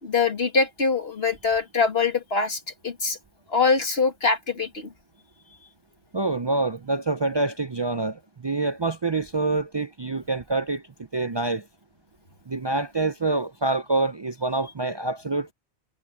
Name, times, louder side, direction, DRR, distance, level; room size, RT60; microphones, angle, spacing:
voice 1, 0.0-3.2 3.5-4.9, left 4 dB, 60° left, 2.5 m, -23 dB
voice 2, 6.1-10.8 11.1-11.7 12.5-15.5, right 2 dB, 45° right, 0.3 m, -26 dB
omnidirectional pair, 1.2 m